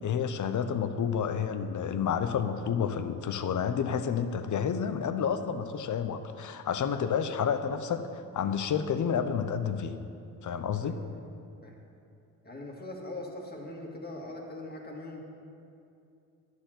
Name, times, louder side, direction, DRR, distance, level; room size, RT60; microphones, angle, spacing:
voice 1, 0.0-10.0 10.4-11.0, left 7 dB, 50° left, 9 dB, 0.8 m, -30 dB
voice 2, 10.8-11.2 11.6-11.7 12.4-15.2, left 2 dB, 25° left, -1 dB, 2.1 m, -41 dB
11.5 x 4.5 x 7.7 m, 2.6 s
supercardioid pair, 70°, 40 cm